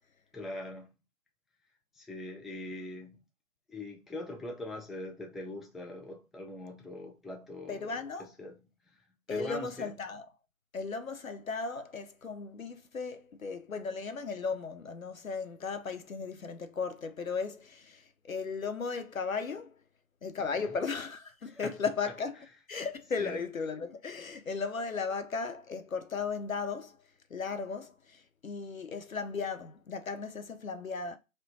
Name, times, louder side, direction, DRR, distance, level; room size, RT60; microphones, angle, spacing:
voice 1, 0.3-0.9 1.9-3.2 3.7-7.9 8.2-8.6 8.9-9.0 9.3-9.9 20.6-20.7 21.4-21.7 23.2-23.4, left 1 dB, ahead, 0.3 m, -42 dB
voice 2, 7.7-8.3 9.3-10.3 10.7-19.8 20.2-22.4 22.7-27.0 27.3-31.2, left 5 dB, 80° left, 0.6 m, -36 dB
2.2 x 2.1 x 3.8 m
figure-of-eight pair, 175°, 41 cm